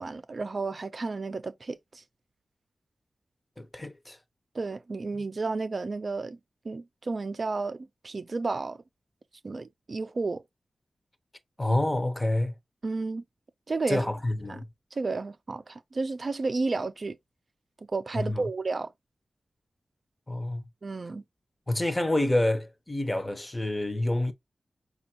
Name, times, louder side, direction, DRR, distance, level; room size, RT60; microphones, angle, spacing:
voice 1, 0.0-2.0 4.5-6.4 6.6-8.8 9.4-10.4 12.8-13.2 13.7-14.1 14.5-14.6 14.9-17.2 17.9-18.9 20.8-21.2, right 3 dB, 45° right, 0.5 m, -32 dB
voice 2, 3.6-4.2 11.6-12.5 13.9-14.7 18.2-18.5 20.3-20.6 21.7-24.3, left 1 dB, 15° left, 0.7 m, -28 dB
5.2 x 2.4 x 2.8 m
wide cardioid pair, 115°, 0 cm